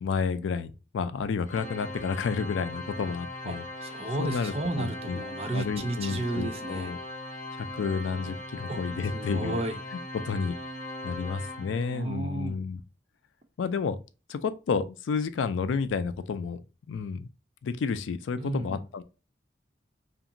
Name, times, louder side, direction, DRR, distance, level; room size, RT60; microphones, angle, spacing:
voice 1, 0.0-3.6 4.2-5.2 5.5-7.0 7.6-9.6 9.9-10.6 11.0-12.8 13.6-14.0 14.3-16.6 16.9-17.3 17.6-19.0, left 5 dB, 90° left, 0.3 m, -31 dB
Organ, 1.5-12.2, left 1 dB, 45° left, 0.7 m, -39 dB
voice 2, 3.4-6.9 8.7-8.8 9.1-9.8 11.9-12.6 18.4-18.8, right 2 dB, 30° right, 0.4 m, -33 dB
2.8 x 2.5 x 2.5 m
head